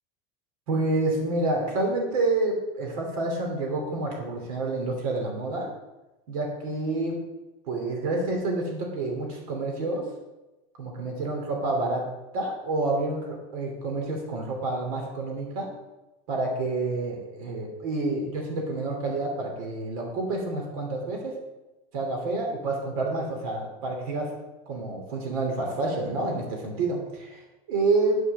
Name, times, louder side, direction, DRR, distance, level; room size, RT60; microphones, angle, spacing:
voice 1, 0.7-5.7 6.3-7.2 7.7-10.0 10.8-12.0 12.3-15.7 16.3-21.4 21.9-24.3 24.7-28.2, right 2 dB, 80° right, 1 dB, 2.9 m, -28 dB
9.7 x 5.9 x 6.6 m, 1.0 s
supercardioid pair, 160°, 18 cm